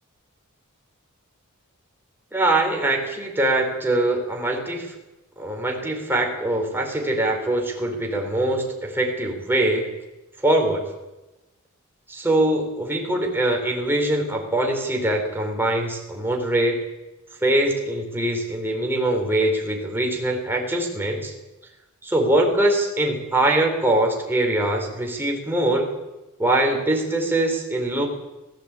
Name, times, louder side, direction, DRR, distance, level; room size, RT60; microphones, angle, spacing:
voice 1, 2.3-4.9 5.4-9.9 10.4-10.8 12.1-16.8 17.4-21.3 22.0-25.9 26.4-28.1, right 1 dB, 10° right, 1 dB, 4.2 m, -22 dB
17.5 x 16.5 x 9.0 m, 1.0 s
head